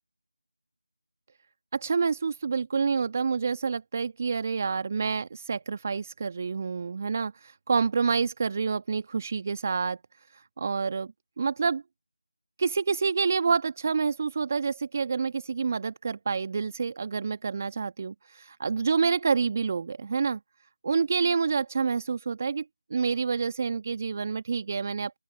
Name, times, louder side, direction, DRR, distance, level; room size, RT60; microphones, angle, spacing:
voice 1, 1.7-10.0 10.3-11.8 12.6-20.4 20.8-22.6 22.9-25.2, right 5 dB, 35° right, 1.3 m, -28 dB
open air
figure-of-eight pair, 165°, 2 cm